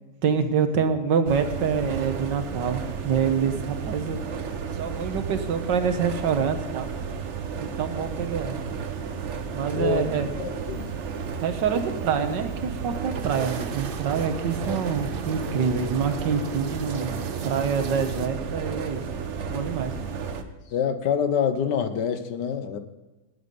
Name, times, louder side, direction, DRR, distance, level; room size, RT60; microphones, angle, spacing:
voice 1, 0.2-4.2 4.8-6.9 7.6-8.6 9.5-10.3 11.4-17.1 17.4-19.0 19.5-19.9, right 6 dB, 85° right, 9 dB, 1.8 m, -26 dB
sound 1, 1.3-20.4, right 6 dB, 50° right, 1.1 m, -33 dB
voice 2, 9.8-10.1 10.4-10.9 14.6-14.8 20.7-22.8, left 7 dB, 75° left, 10 dB, 1.7 m, -26 dB
sound 2, 10.6-18.3, right 7 dB, 70° right, 0.5 m, -39 dB
19.0 x 8.1 x 5.4 m, 1.1 s
omnidirectional pair, 1.9 m